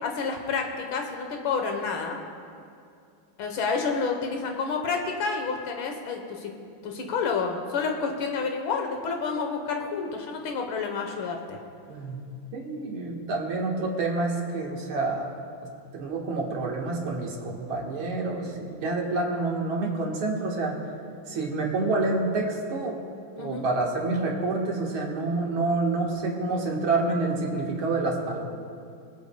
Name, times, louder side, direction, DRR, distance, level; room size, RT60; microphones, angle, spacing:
voice 1, 0.0-2.2 3.4-6.5 6.8-11.6 23.4-23.6, left 5 dB, 75° left, 3 dB, 1.8 m, -29 dB
voice 2, 12.5-15.3 15.9-20.7 21.3-23.0 23.4-28.4, right 3 dB, 85° right, -1 dB, 2.3 m, -28 dB
24.5 x 8.4 x 2.2 m, 2.4 s
omnidirectional pair, 2.2 m